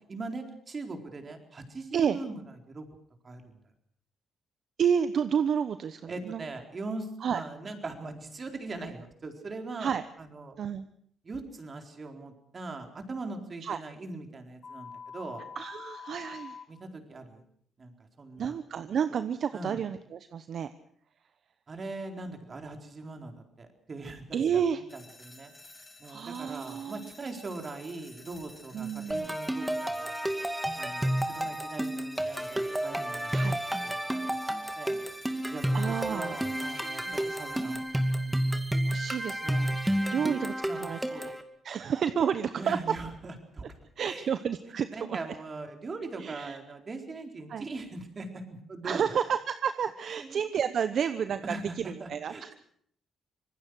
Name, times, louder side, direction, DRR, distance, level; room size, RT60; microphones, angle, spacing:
voice 1, 0.1-2.4 2.7-2.9 3.2-3.5 6.1-10.6 11.2-15.4 16.7-17.4 17.8-18.6 19.5-19.8 21.7-24.6 24.9-25.5 26.0-30.1 30.7-33.3 33.8-34.0 34.7-35.0 35.5-37.8 38.2-38.4 40.1-40.3 40.6-41.3 41.8-41.9 42.6-43.7 44.0-44.4 44.9-49.1 50.2-50.4 51.4-52.5, right 3 dB, 35° right, 4 dB, 4.3 m, -41 dB
voice 2, 4.8-6.5 7.2-7.4 9.8-10.0 10.6-10.9 13.6-13.8 15.6-16.6 18.4-20.7 24.3-24.8 26.1-27.1 28.7-29.4 33.3-33.6 35.7-36.4 37.1-37.8 38.9-39.8 40.1-41.3 41.6-42.8 44.0-45.3 46.2-46.6 47.5-47.7 48.8-52.5, right 7 dB, 60° right, 11 dB, 0.9 m, -31 dB
sound 1, 14.6-16.6, left 6 dB, 45° left, 6.0 m, -44 dB
sound 2, 24.9-37.8, left 2 dB, 15° left, 6.2 m, -52 dB
sound 3, 29.1-41.4, right 1 dB, 5° right, 2.3 m, -31 dB
25.5 x 19.5 x 6.3 m, 0.64 s
cardioid pair, 90°, 0 cm